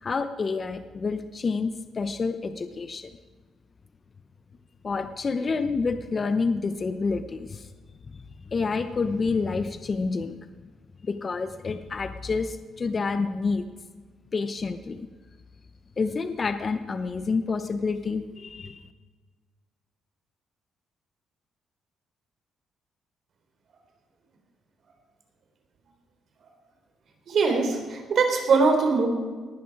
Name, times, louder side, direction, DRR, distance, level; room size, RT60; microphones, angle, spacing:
voice 1, 0.0-3.1 4.8-7.7 8.5-10.4 11.0-13.6 14.3-15.1 16.0-18.8, left 4 dB, 35° left, 10 dB, 0.8 m, -28 dB
voice 2, 27.3-29.1, right 4 dB, 60° right, 4 dB, 3.7 m, -22 dB
19.0 x 11.0 x 4.7 m, 1.4 s
cardioid pair, 90°, 0 cm